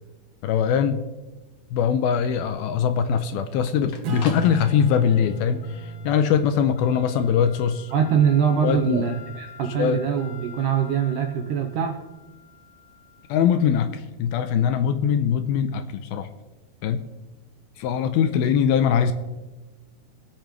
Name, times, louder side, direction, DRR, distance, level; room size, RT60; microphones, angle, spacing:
voice 1, 0.4-1.0 1.7-7.9 8.6-9.1 9.7-10.0 13.3-16.3 16.8-17.0 17.8-19.1, left 8 dB, 80° left, 2.4 m, -22 dB
sound 1, 1.3-15.4, left 6 dB, 60° left, 2.3 m, -47 dB
Acoustic guitar / Strum, 4.0-9.0, right 3 dB, 60° right, 2.1 m, -36 dB
voice 2, 7.9-11.9, right 8 dB, 75° right, 1.9 m, -23 dB
26.0 x 8.9 x 3.1 m
omnidirectional pair, 4.7 m